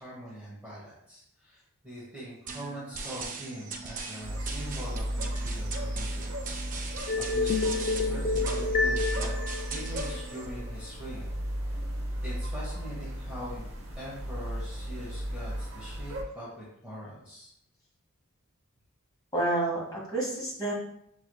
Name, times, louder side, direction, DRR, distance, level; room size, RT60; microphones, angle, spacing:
voice 1, 0.0-6.3 7.2-9.3 9.7-11.3 12.2-13.7 14.0-17.5, equal, 5° right, -8 dB, 1.2 m, -42 dB
sound 1, 2.5-10.5, right 4 dB, 35° right, 0.5 m, -40 dB
sound 2, 4.2-16.2, equal, 65° right, 0.9 m, -35 dB
sound 3, 7.1-10.4, left 3 dB, 40° left, 0.3 m, -29 dB
voice 2, 19.3-20.7, right 2 dB, 15° left, -6 dB, 1.7 m, -29 dB
6.6 x 3.2 x 2.3 m, 0.72 s
head